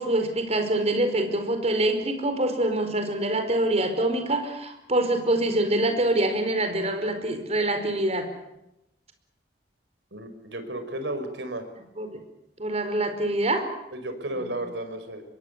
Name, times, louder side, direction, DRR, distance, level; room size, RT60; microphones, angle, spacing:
voice 1, 0.0-8.3 12.0-12.2 12.6-13.7, right 1 dB, 35° right, 7 dB, 4.8 m, -25 dB
voice 2, 10.1-11.7 13.9-15.2, right 1 dB, 75° right, 8 dB, 5.4 m, -33 dB
26.0 x 22.5 x 8.3 m, 0.87 s
head